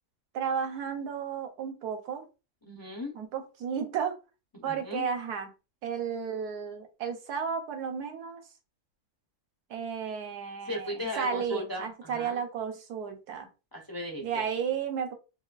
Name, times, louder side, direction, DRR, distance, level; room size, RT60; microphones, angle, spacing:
voice 1, 0.3-2.2 3.1-4.2 4.6-5.5 5.8-8.4 9.7-13.5 14.2-15.1, right 7 dB, 80° right, 4 dB, 1.3 m, -33 dB
voice 2, 2.6-3.1 4.5-5.1 10.7-12.4 13.7-14.4, left 1 dB, 35° left, 0 dB, 0.3 m, -37 dB
4.9 x 2.3 x 2.4 m, 0.30 s
omnidirectional pair, 1.7 m